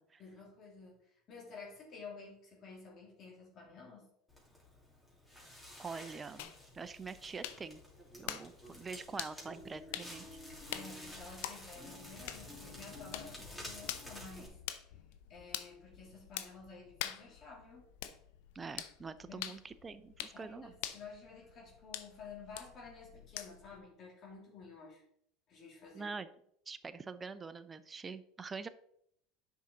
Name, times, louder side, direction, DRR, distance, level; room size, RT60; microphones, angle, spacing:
voice 1, 0.2-4.1 10.7-14.6 15.3-17.8 19.3-19.6 20.3-25.0 25.5-26.1, left 4 dB, 45° left, -2 dB, 2.9 m, -52 dB
Crackle, 4.3-14.5, left 1 dB, 10° left, 2.9 m, -51 dB
voice 2, 5.8-7.8 8.2-10.3 18.5-20.7 25.9-26.3 26.7-28.7, right 4 dB, 25° right, 13 dB, 0.6 m, -45 dB
sound 1, 6.4-23.8, left 12 dB, 70° left, 0.6 m, -47 dB
8.3 x 5.8 x 3.8 m, 0.70 s
hypercardioid pair, 85°, 0 cm